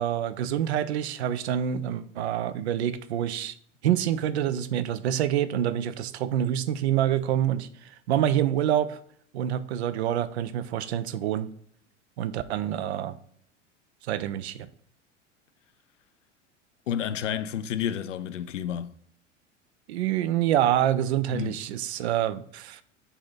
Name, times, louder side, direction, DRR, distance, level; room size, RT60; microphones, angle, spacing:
voice 1, 0.0-3.5 3.8-9.0 9.3-11.5 12.2-13.2 14.1-14.7 19.9-22.8, right 11 dB, 60° right, 0.5 m, -27 dB
voice 2, 16.9-18.9 21.3-21.6, left 9 dB, 75° left, 0.5 m, -30 dB
6.9 x 2.9 x 5.3 m
figure-of-eight pair, 80°, 37 cm